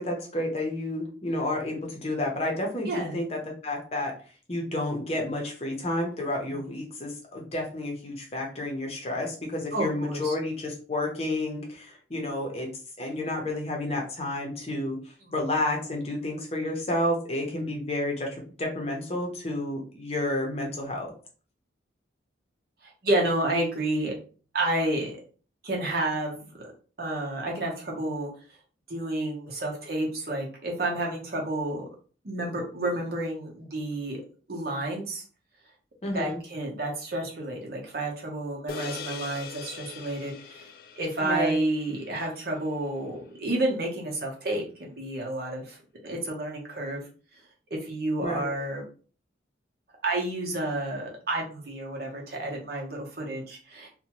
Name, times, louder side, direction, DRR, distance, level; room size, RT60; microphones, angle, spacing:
voice 1, 0.0-4.1 4.5-12.7 13.0-15.0 15.3-21.1 36.0-36.4 41.2-41.6 48.2-48.5, left 1 dB, 30° left, 0 dB, 0.7 m, -30 dB
voice 2, 2.8-3.2 6.5-6.7 9.7-10.3 15.2-15.3 22.8-24.1 24.5-25.2 25.6-26.7 27.0-28.3 28.9-31.9 32.2-34.2 34.5-35.2 36.1-45.8 46.0-47.0 47.7-48.8 50.0-53.9, right 1 dB, 55° right, 0 dB, 0.8 m, -30 dB
sound 1, 38.7-43.3, left 6 dB, 50° left, 0.3 m, -42 dB
2.6 x 2.2 x 2.9 m, 0.39 s
head